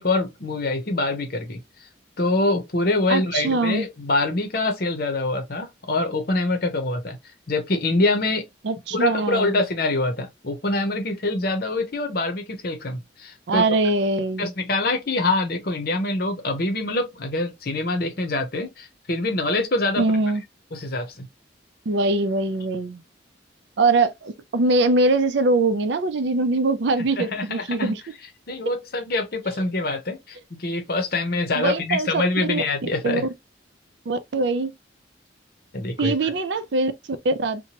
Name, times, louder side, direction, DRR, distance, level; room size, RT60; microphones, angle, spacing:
voice 1, 0.0-1.6 2.2-7.2 7.5-8.4 8.9-13.6 14.4-20.0 20.7-21.3 27.2-27.9 28.5-33.2 35.7-36.1, left 2 dB, 55° left, 0.7 m, -25 dB
voice 2, 3.1-3.9 8.6-9.6 13.5-14.5 20.0-20.4 21.9-23.0 23.8-28.0 31.5-32.6 33.0-33.2 34.1-34.7 36.0-36.9 37.2-37.6, right 2 dB, 70° right, 0.5 m, -22 dB
2.8 x 2.2 x 2.9 m
head